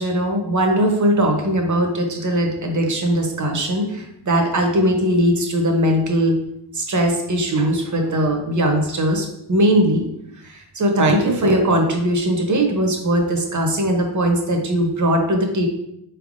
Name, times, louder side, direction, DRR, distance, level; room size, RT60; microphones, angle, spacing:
voice 1, 0.0-6.4 6.7-10.1 10.4-15.7, right 1 dB, 45° right, 3 dB, 0.9 m, -19 dB
4.3 x 3.4 x 2.6 m, 0.80 s
cardioid pair, 70°, 41 cm